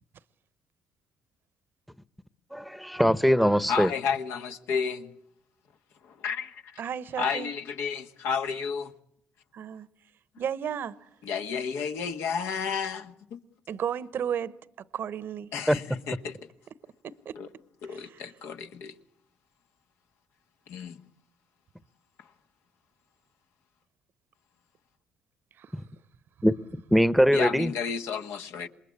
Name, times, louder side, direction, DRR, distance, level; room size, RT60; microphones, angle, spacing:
voice 1, 2.5-3.9 15.7-15.8 26.4-26.5 26.9-27.7, equal, ahead, 1.0 m, -21 dB
voice 2, 3.7-5.1 6.0-6.8 7.2-8.9 11.2-13.4 15.5-16.4 17.4-17.5 17.8-18.9 20.7-21.0 27.3-28.7, left 6 dB, 75° left, 1.6 m, -32 dB
voice 3, 6.8-7.5 9.5-9.9 10.4-11.0 13.7-14.5 14.9-15.5 17.0-17.4 17.9-18.3 25.6-25.7, right 8 dB, 60° right, 0.9 m, -33 dB
27.0 x 21.5 x 8.7 m
supercardioid pair, 60°, 4 cm